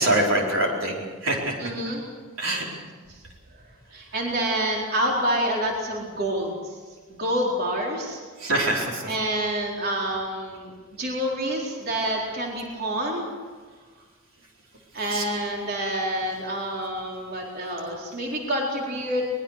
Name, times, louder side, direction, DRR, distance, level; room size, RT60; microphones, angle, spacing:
voice 1, 0.0-1.6 2.4-2.6 8.4-9.1 15.1-15.3, right 1 dB, 70° right, -1 dB, 4.6 m, -24 dB
voice 2, 1.6-2.0 2.7-2.8 3.1-3.2 3.9-6.8 7.1-8.2 9.1-10.7 11.0-13.3 14.9-19.2, right 1 dB, 50° right, -1 dB, 4.3 m, -27 dB
22.5 x 21.5 x 6.7 m, 1.5 s
head